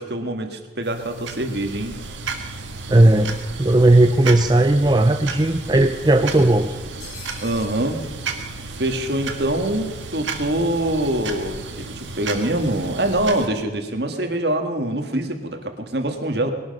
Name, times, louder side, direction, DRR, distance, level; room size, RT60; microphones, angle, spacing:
voice 1, 0.0-1.9 7.4-8.0 8.7-16.5, right 1 dB, 60° right, 6 dB, 1.7 m, -24 dB
sound 1, 0.8-13.5, right 4 dB, 85° right, 1.6 m, -33 dB
voice 2, 2.9-6.8, right 1 dB, 20° right, 7 dB, 0.5 m, -16 dB
sound 2, 6.2-7.9, left 3 dB, 55° left, 4.4 m, -44 dB
20.0 x 12.0 x 5.4 m, 1.2 s
head